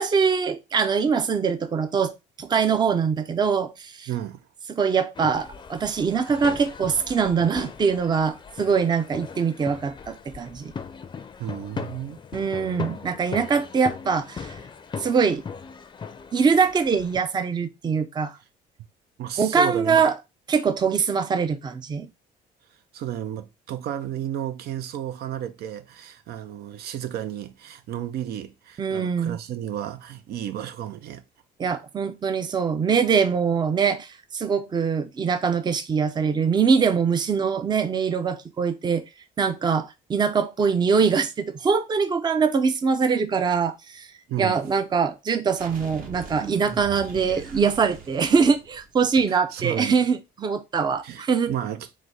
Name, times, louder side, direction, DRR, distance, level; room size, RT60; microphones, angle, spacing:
voice 1, 0.0-4.1 4.7-10.7 12.3-14.5 15.0-15.4 16.3-18.4 19.4-20.1 20.5-22.1 28.8-29.4 31.6-39.0 39.4-44.1 44.4-51.5, right 5 dB, 25° right, 0.5 m, -23 dB
voice 2, 4.1-4.5 11.4-12.2 19.2-20.0 22.9-31.2 44.3-44.6 49.3-50.0 51.0-51.9, right 11 dB, 70° right, 0.6 m, -32 dB
sound 1, 5.1-17.2, left 5 dB, 25° left, 0.5 m, -39 dB
sound 2, 45.6-49.3, right 5 dB, 55° right, 1.2 m, -41 dB
4.1 x 2.2 x 4.6 m
cardioid pair, 110°, 17 cm